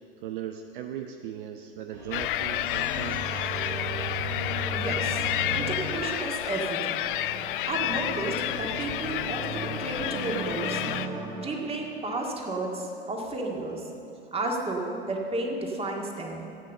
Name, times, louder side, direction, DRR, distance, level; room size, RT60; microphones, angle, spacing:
voice 1, 0.2-3.4, right 10 dB, 60° right, 6 dB, 0.7 m, -38 dB
sound 1, 1.9-12.0, right 1 dB, 80° right, 3.3 m, -36 dB
sound 2, 2.1-11.1, left 13 dB, 60° left, 0.5 m, -30 dB
voice 2, 4.7-5.2 5.5-7.1 7.7-10.8 11.4-13.9 14.3-16.5, right 2 dB, 20° right, 0 dB, 2.1 m, -32 dB
14.0 x 8.6 x 6.6 m, 2.8 s
figure-of-eight pair, 85°, 30 cm